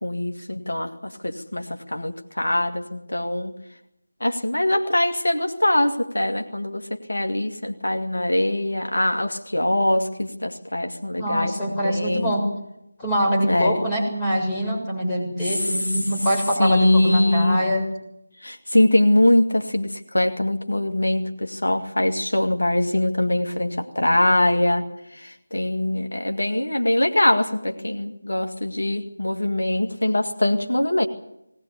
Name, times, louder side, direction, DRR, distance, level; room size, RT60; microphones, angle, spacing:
voice 1, 0.0-3.5 4.2-12.3 13.4-13.8 15.5-16.0 16.6-17.6 18.4-24.8 25.1-31.1, left 1 dB, 70° left, 5 dB, 2.0 m, -22 dB
voice 2, 11.2-12.4 13.0-17.8, equal, 15° left, -2 dB, 7.1 m, -24 dB
20.0 x 19.0 x 8.6 m, 0.84 s
figure-of-eight pair, 165°, 0 cm